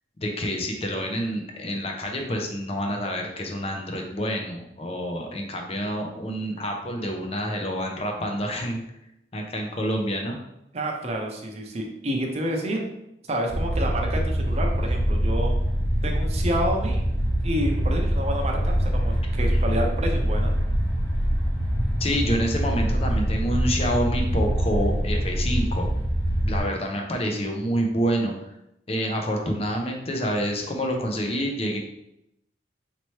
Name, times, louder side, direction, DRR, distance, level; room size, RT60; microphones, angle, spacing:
voice 1, 0.2-8.8 9.3-10.4 22.0-25.8 26.4-28.3 28.9-31.8, equal, 35° left, 2 dB, 0.6 m, -27 dB
voice 2, 10.7-12.8 13.3-15.5 16.0-17.0 17.4-20.5, right 1 dB, 40° right, 1 dB, 0.6 m, -29 dB
sound 1, 13.5-26.6, equal, 15° left, 1.1 m, -24 dB
4.5 x 2.8 x 3.1 m, 0.82 s
head